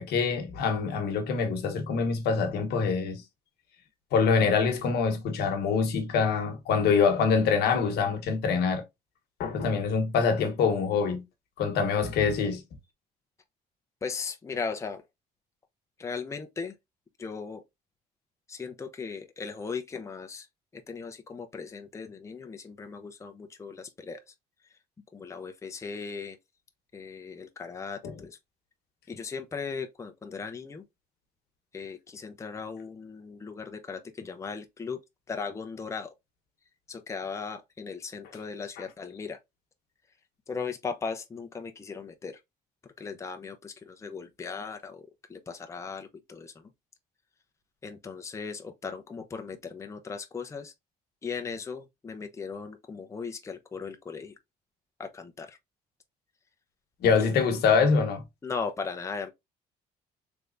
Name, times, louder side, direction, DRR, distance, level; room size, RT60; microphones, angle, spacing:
voice 1, 0.0-3.2 4.1-8.8 9.4-11.2 11.6-12.6 28.0-28.1 38.8-38.9 57.0-58.2, left 5 dB, 70° left, 1.1 m, -25 dB
voice 2, 14.0-15.0 16.0-16.7 17.2-17.6 18.5-20.5 20.7-24.2 25.1-26.4 26.9-28.4 29.1-30.8 31.7-35.0 35.3-36.1 36.9-39.4 40.5-42.4 43.0-45.0 45.3-46.5 47.8-50.7 51.2-54.3 55.0-55.6 57.2-57.3 58.4-59.3, left 5 dB, 15° left, 0.5 m, -37 dB
3.4 x 3.3 x 2.5 m
cardioid pair, 110°, 17 cm